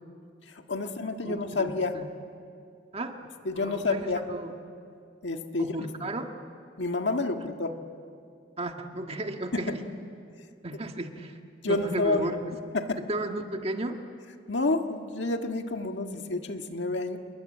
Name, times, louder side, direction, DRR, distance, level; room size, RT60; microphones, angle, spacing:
voice 1, 0.5-2.0 3.5-4.3 5.2-5.7 6.8-7.8 9.5-9.6 11.6-12.3 12.7-13.0 14.5-17.2, left 3 dB, 70° left, 5 dB, 1.7 m, -29 dB
voice 2, 1.2-1.7 1.9-2.1 2.9-3.2 3.5-4.5 5.6-6.3 8.6-9.8 10.6-11.4 11.7-12.4 13.0-14.0, right 1 dB, 35° right, 4 dB, 1.7 m, -34 dB
27.5 x 22.0 x 9.0 m, 2.4 s
head